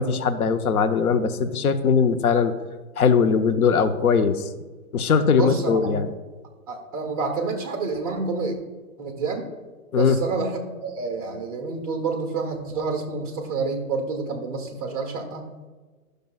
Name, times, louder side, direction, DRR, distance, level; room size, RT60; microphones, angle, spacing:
voice 1, 0.0-2.5 3.0-4.5 4.9-6.1 9.9-10.2, left 6 dB, 75° left, 10 dB, 0.8 m, -20 dB
voice 2, 5.3-5.9 6.7-8.5 9.0-9.5 10.0-15.5, right 4 dB, 25° right, 2 dB, 1.2 m, -28 dB
12.0 x 6.6 x 2.4 m, 1.3 s
hypercardioid pair, 175°, 44 cm